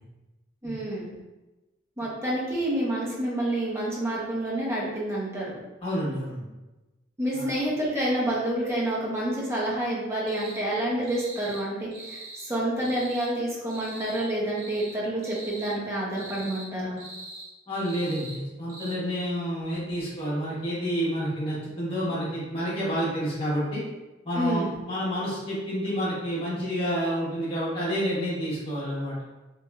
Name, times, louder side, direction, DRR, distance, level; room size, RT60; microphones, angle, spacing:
voice 1, 0.6-1.1 2.0-5.6 7.2-17.0 24.3-24.7, right 1 dB, 15° right, -6 dB, 0.7 m, -28 dB
voice 2, 5.8-6.4 7.3-7.5 17.7-23.8 24.2-29.2, equal, 30° left, -8 dB, 1.1 m, -29 dB
sound 1, 10.3-10.6 11.0-11.6 11.9-12.4 12.8-13.3 13.7-14.3 14.5-14.9 15.2-15.8 16.1-16.7 17.0-17.5 17.8-18.4 18.7-18.9, right 2 dB, 50° right, 0.8 m, -42 dB
3.0 x 2.6 x 2.3 m, 1.1 s
head